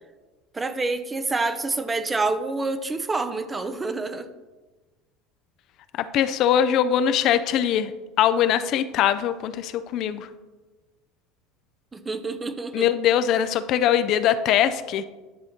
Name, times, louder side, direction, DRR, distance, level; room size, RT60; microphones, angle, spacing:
voice 1, 0.5-4.3 11.9-12.9, right 3 dB, 20° right, 11 dB, 0.5 m, -27 dB
voice 2, 6.0-7.9 8.2-10.3 12.7-15.0, left 10 dB, 55° left, 12 dB, 0.4 m, -22 dB
10.5 x 4.3 x 4.3 m, 1.2 s
supercardioid pair, 115°, 0 cm